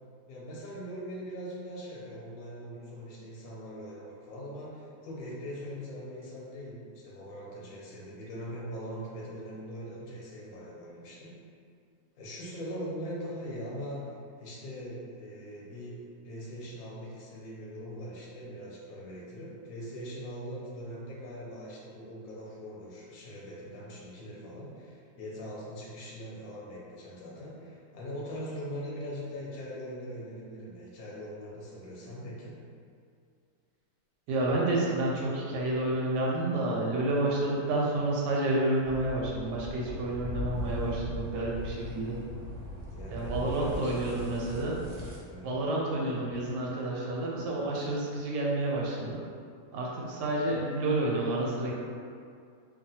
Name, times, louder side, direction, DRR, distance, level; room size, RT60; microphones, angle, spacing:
voice 1, 0.3-11.3 12.2-32.5 42.9-44.4 45.3-45.6, equal, 65° left, -5 dB, 0.9 m, -41 dB
voice 2, 34.3-42.2 43.1-44.8 45.4-49.2 49.7-51.7, right 2 dB, 90° right, -3 dB, 1.2 m, -29 dB
sound 1, 38.8-45.2, left 1 dB, 65° right, 0.9 m, -39 dB
2.9 x 2.3 x 2.7 m, 2.3 s
omnidirectional pair, 1.8 m